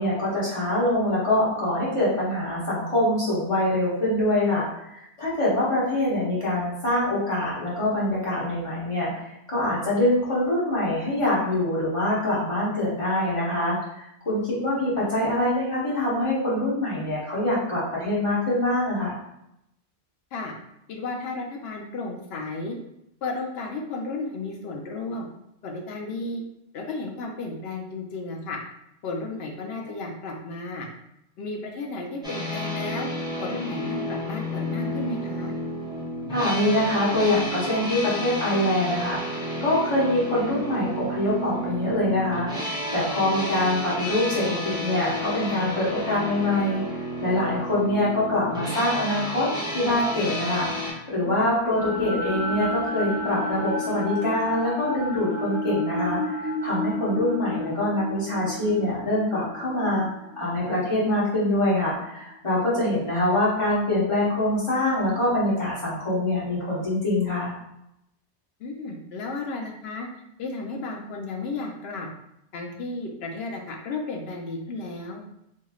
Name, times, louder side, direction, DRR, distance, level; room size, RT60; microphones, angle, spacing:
voice 1, 0.0-19.1 36.3-46.8 47.2-49.5 49.7-67.6, left 1 dB, 30° left, -8 dB, 1.1 m, -24 dB
voice 2, 20.9-22.7 23.2-25.3 25.6-26.4 26.7-28.6 29.0-30.9 31.4-33.1 33.4-35.5 51.8-52.0 63.3-63.4 68.6-70.1 70.4-72.1 72.5-75.2, left 3 dB, 70° left, 1 dB, 0.8 m, -33 dB
sound 1, 32.2-50.9, equal, 5° right, 0.7 m, -31 dB
sound 2, 51.2-61.4, left 1 dB, 55° right, 1.1 m, -31 dB
3.0 x 2.7 x 2.3 m, 0.81 s
omnidirectional pair, 1.2 m